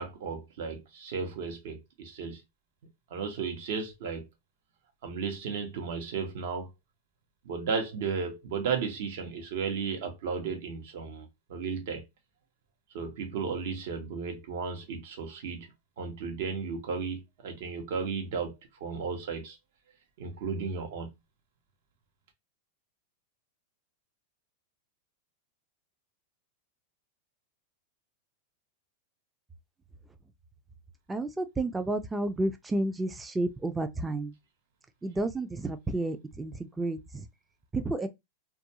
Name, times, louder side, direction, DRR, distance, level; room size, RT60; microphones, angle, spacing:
voice 1, 0.0-2.4 3.1-4.3 5.0-6.7 7.4-12.0 12.9-15.7 16.0-18.5 18.8-19.6 20.2-21.1, right 5 dB, 65° right, 0.9 m, -34 dB
voice 2, 31.1-34.3 35.0-37.3 37.7-38.1, right 2 dB, 10° right, 0.3 m, -31 dB
2.3 x 2.2 x 2.8 m
hypercardioid pair, 125°, 0 cm